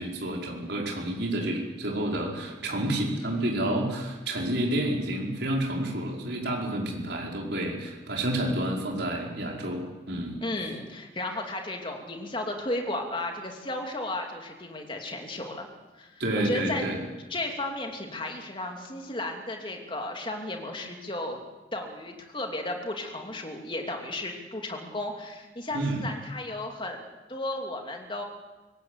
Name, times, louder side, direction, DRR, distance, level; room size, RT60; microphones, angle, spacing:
voice 1, 0.0-10.4 16.2-17.0 25.7-26.0, right 1 dB, 65° right, -1 dB, 5.1 m, -29 dB
voice 2, 10.4-15.7 16.0-16.9 17.3-21.4 21.7-27.0 27.3-28.2, left 1 dB, 25° left, 2 dB, 3.0 m, -34 dB
24.0 x 18.0 x 8.3 m, 1.1 s
head